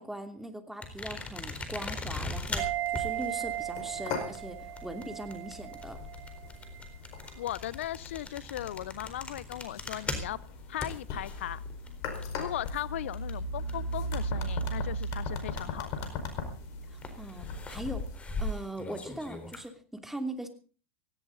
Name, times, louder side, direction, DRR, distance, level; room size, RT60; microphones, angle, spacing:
voice 1, 0.0-6.0 16.9-20.5, right 1 dB, 5° right, 7 dB, 2.8 m, -40 dB
sound 1, 0.8-14.2 14.4-16.3 17.0-19.7, left 2 dB, 20° left, 4.1 m, -40 dB
sound 2, 2.4-18.2, left 1 dB, 50° left, 4.9 m, -38 dB
sound 3, 2.6-6.5 6.8-6.9, right 14 dB, 45° right, 1.4 m, -36 dB
voice 2, 7.4-10.4 10.7-11.6 12.2-16.1, left 13 dB, 75° left, 21 dB, 0.6 m, -37 dB
17.5 x 17.0 x 4.0 m, 0.38 s
hypercardioid pair, 100°, 7 cm